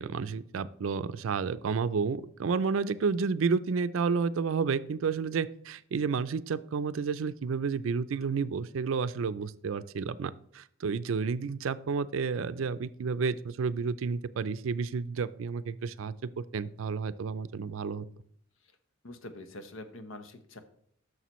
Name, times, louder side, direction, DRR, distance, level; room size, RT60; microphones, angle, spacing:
voice 1, 0.0-18.0, right 5 dB, 75° right, 14 dB, 0.4 m, -31 dB
voice 2, 19.0-20.6, left 2 dB, 75° left, 9 dB, 0.9 m, -44 dB
11.0 x 6.5 x 3.1 m, 0.65 s
head